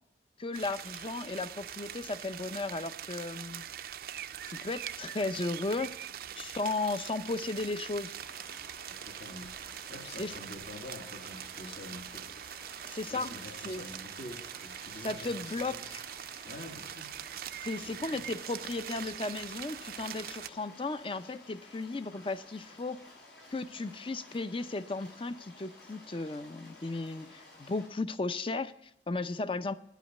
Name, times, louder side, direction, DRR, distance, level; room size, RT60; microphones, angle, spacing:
voice 1, 0.4-3.6 4.5-5.9 6.4-8.1 10.2-10.4 12.8-13.3 13.6-13.8 15.0-16.0 17.6-23.0 23.5-29.7, left 3 dB, 30° left, 13 dB, 0.5 m, -35 dB
sound 1, 0.5-20.5, right 10 dB, 55° right, 0.4 m, -43 dB
sound 2, 8.2-27.9, left 2 dB, 80° left, 5.9 m, -54 dB
voice 2, 8.9-9.6 9.9-12.3 13.1-15.9 16.4-17.1 17.8-18.2, left 2 dB, 60° left, 2 dB, 1.9 m, -47 dB
10.5 x 8.3 x 9.5 m, 0.78 s
head